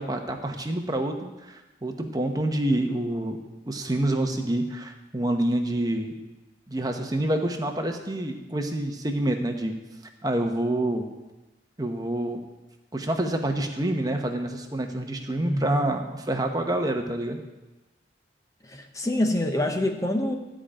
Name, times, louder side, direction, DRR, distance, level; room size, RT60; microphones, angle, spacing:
voice 1, 0.0-3.4 3.7-6.1 6.7-9.7 10.2-11.1 11.8-12.4 12.9-17.4, right 1 dB, 20° right, 4 dB, 0.9 m, -27 dB
voice 2, 15.4-15.9 18.6-20.4, left 1 dB, 20° left, 4 dB, 0.7 m, -26 dB
13.0 x 5.0 x 8.8 m, 1.1 s
head